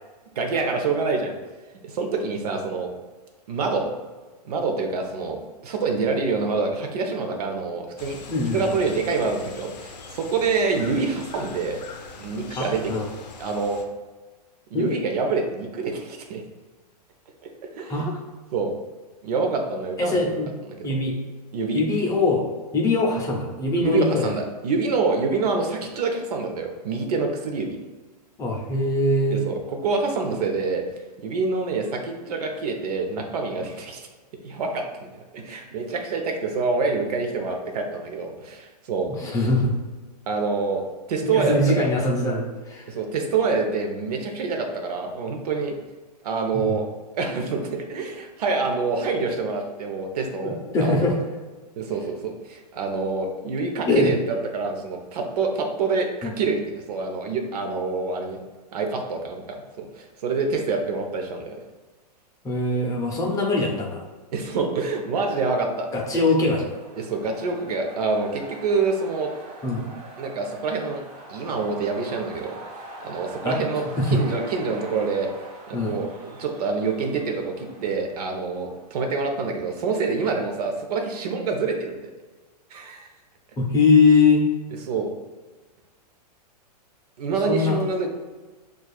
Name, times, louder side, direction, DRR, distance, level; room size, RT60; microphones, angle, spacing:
voice 1, 0.4-1.3 1.8-2.9 3.5-3.9 4.4-8.2 8.5-11.8 12.1-12.9 13.4-13.8 14.7-16.4 17.4-17.5 17.8-18.0 18.5-18.7 19.2-20.2 20.8-20.9 21.5-21.8 23.8-27.8 29.3-30.8 31.2-34.1 34.4-35.1 35.3-39.1 40.3-40.8 41.1-41.9 42.9-45.7 46.2-46.9 47.1-51.1 51.8-58.4 58.7-59.6 59.9-61.6 64.3-65.9 66.1-66.2 67.0-69.3 70.2-72.5 73.0-75.3 75.7-82.0 82.7-83.1 84.8-85.1 87.2-88.1, right 4 dB, 65° right, 3 dB, 0.8 m, -26 dB
sound 1, 8.0-13.8, left 4 dB, 90° left, 0.7 m, -42 dB
voice 2, 8.3-8.7 12.5-13.1 14.7-15.0 17.9-18.1 20.0-20.5 20.8-21.1 21.7-22.4 22.7-24.3 28.4-29.4 39.2-39.7 41.2-42.9 46.5-46.8 50.3-51.2 53.9-54.1 56.2-56.3 62.4-64.0 65.9-66.7 69.6-69.9 73.4-73.6 74.0-74.2 75.7-76.0 83.6-84.4 87.5-87.8, left 3 dB, 15° left, -1 dB, 0.6 m, -22 dB
sound 2, 65.8-79.2, right 2 dB, 30° right, 0.7 m, -43 dB
6.3 x 2.4 x 2.4 m, 1.3 s
hypercardioid pair, 140°, 21 cm